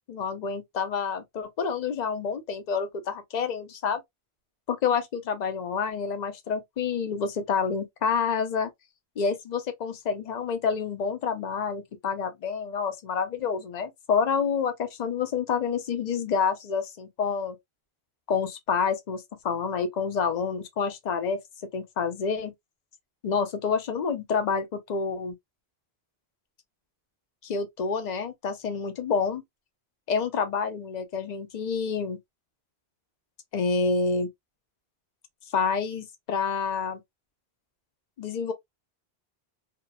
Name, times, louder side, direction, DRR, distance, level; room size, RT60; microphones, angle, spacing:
voice 1, 0.1-4.0 4.7-8.7 9.2-17.6 18.3-21.4 21.7-22.5 23.2-25.3 27.4-29.4 30.1-32.2 33.5-34.3 35.5-37.0 38.2-38.5, left 5 dB, 50° left, 0.6 m, -28 dB
2.9 x 2.4 x 2.2 m
omnidirectional pair, 1.1 m